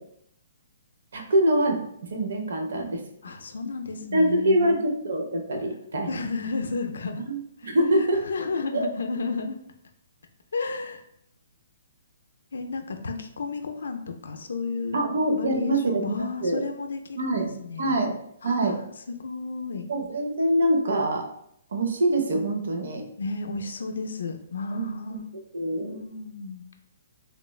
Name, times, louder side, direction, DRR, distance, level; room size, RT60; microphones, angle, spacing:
voice 1, 1.1-1.8 2.1-3.0 4.1-6.2 7.3-8.2 8.7-8.9 14.9-16.6 17.2-17.5 17.8-18.1 18.4-18.8 19.9-21.3 21.7-23.0 24.7-25.2 25.5-26.0, right 1 dB, 60° right, 2 dB, 0.5 m, -24 dB
voice 2, 3.2-4.8 6.1-7.2 7.6-9.6 10.5-11.0 12.5-15.0 15.3-18.0 18.4-18.8 19.1-19.9 23.2-25.3 25.8-26.7, left 4 dB, 75° left, 6 dB, 0.3 m, -32 dB
3.0 x 2.1 x 2.2 m, 0.72 s
hypercardioid pair, 180°, 0 cm